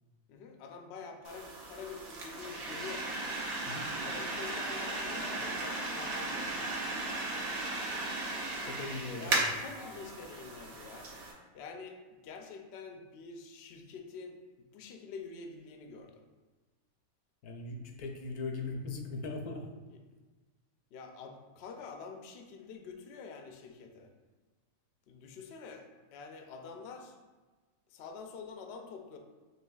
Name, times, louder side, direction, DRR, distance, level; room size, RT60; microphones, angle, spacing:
voice 1, 0.3-3.2 4.0-6.8 9.2-11.1 11.5-14.4 14.7-16.2 19.9-20.0 20.9-24.1 25.1-27.2 27.9-29.2, left 5 dB, 65° left, 4 dB, 0.6 m, -47 dB
sound 1, 1.2-11.3, right 2 dB, 70° right, 1.2 m, -36 dB
voice 2, 8.7-9.4 17.4-19.7, left 3 dB, 90° left, 4 dB, 1.1 m, -39 dB
5.4 x 3.2 x 2.3 m, 1.3 s
omnidirectional pair, 1.5 m